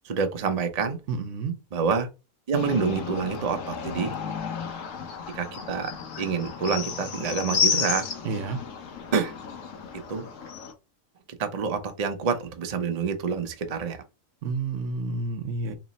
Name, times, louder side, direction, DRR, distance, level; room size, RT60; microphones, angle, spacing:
voice 1, 0.0-1.0 1.7-2.1 2.5-4.1 5.3-8.1 9.1-9.3 10.1-10.3 11.4-14.0, right 5 dB, 45° right, 0.5 m, -27 dB
voice 2, 1.1-1.6 8.2-8.6 14.4-15.7, right 3 dB, 65° right, 1.0 m, -30 dB
sound 1, 2.5-10.7, left 6 dB, 70° left, 1.2 m, -32 dB
3.2 x 3.0 x 4.0 m
omnidirectional pair, 1.5 m